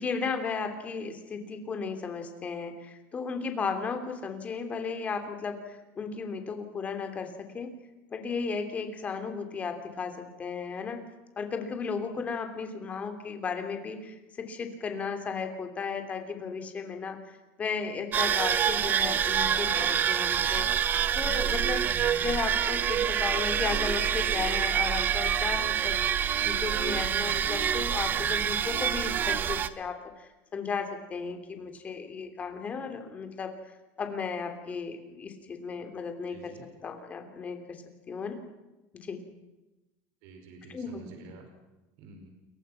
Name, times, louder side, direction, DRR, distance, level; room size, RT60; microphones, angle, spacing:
voice 1, 0.0-7.7 8.1-11.0 11.4-20.9 21.1-21.9 22.2-33.5 34.0-36.5 36.8-38.4 38.9-39.2 40.7-41.0, left 5 dB, 20° left, 6 dB, 3.1 m, -35 dB
sound 1, 18.1-29.7, right 9 dB, 25° right, 0.9 m, -27 dB
voice 2, 36.3-36.7 40.2-41.5 42.0-42.3, right 3 dB, 60° right, 4 dB, 5.5 m, -49 dB
29.5 x 23.5 x 5.9 m, 1.0 s
cardioid pair, 165°, 7 cm